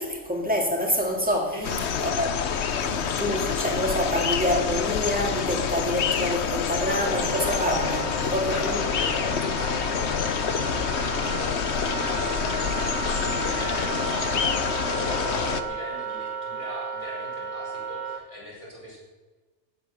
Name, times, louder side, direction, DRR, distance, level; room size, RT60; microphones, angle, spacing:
voice 1, 0.0-1.5 2.0-2.3 2.8-8.8, equal, 5° right, 2.4 m, -27 dB
voice 2, 1.5-1.9 8.2-19.0, left 1 dB, 25° left, 5.6 m, -40 dB
sound 1, 1.6-15.6, left 7 dB, 65° left, 1.1 m, -27 dB
Wind instrument woodwind instrument, 7.0-18.2, right 6 dB, 60° right, 1.7 m, -34 dB
15.5 x 8.7 x 6.5 m
omnidirectional pair, 1.3 m